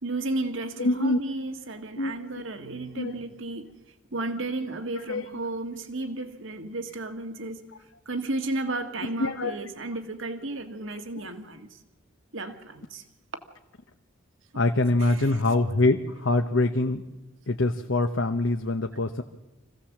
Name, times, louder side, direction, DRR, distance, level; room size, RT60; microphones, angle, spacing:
voice 1, 0.0-3.7 4.1-7.6 8.1-11.7 12.3-13.0 15.0-15.4, right 2 dB, 70° right, 1.8 m, -33 dB
voice 2, 0.8-1.2 2.0-2.1 3.0-3.1 5.1-5.3 9.2-9.5 11.1-11.3 14.6-17.0 17.5-19.2, left 2 dB, 65° left, 1.0 m, -24 dB
25.5 x 16.0 x 7.3 m
head